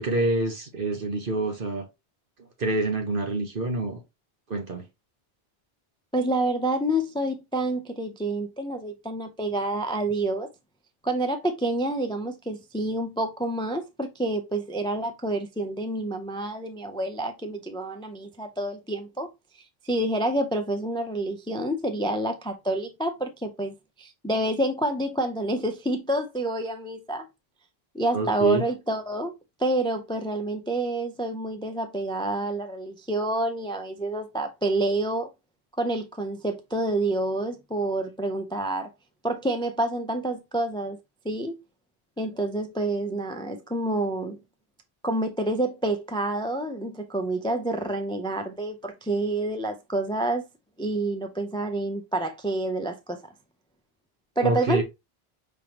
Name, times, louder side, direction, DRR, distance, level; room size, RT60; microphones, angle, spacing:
voice 1, 0.0-1.9 2.4-4.0 4.5-4.8 28.1-28.6 54.4-54.8, right 2 dB, 60° right, 1.3 m, -27 dB
voice 2, 6.1-10.5 11.0-19.3 19.8-27.2 27.9-29.3 29.6-35.3 35.8-38.9 39.2-41.0 41.2-41.6 42.2-44.4 45.0-50.4 50.8-53.2 54.4-54.8, right 1 dB, 5° left, 0.4 m, -28 dB
5.1 x 3.4 x 2.9 m
omnidirectional pair, 1.0 m